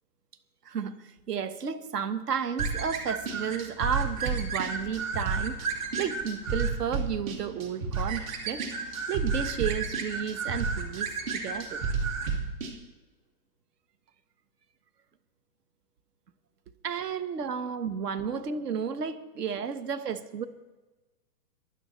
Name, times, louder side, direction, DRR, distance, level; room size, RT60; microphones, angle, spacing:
voice 1, 0.6-11.8 16.8-20.4, right 7 dB, 70° right, 11 dB, 1.4 m, -33 dB
Bird Rap, 2.6-12.7, right 4 dB, 55° right, 2.6 m, -31 dB
22.5 x 11.5 x 3.2 m, 1.2 s
hypercardioid pair, 165°, 49 cm